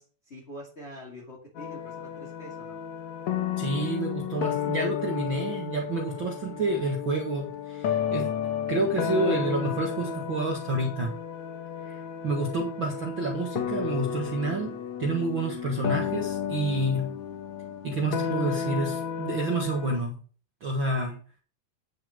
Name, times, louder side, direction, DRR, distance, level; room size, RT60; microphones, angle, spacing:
voice 1, 0.0-2.8 15.4-15.8 21.0-21.2, left 1 dB, 20° left, -2 dB, 2.1 m, -45 dB
sound 1, 1.5-20.0, left 8 dB, 60° left, 2.4 m, -32 dB
voice 2, 3.6-8.3 8.7-11.1 11.8-17.1 17.8-20.2 20.6-21.1, right 2 dB, 50° right, 0 dB, 1.6 m, -29 dB
10.5 x 7.5 x 5.0 m, 0.40 s
omnidirectional pair, 4.2 m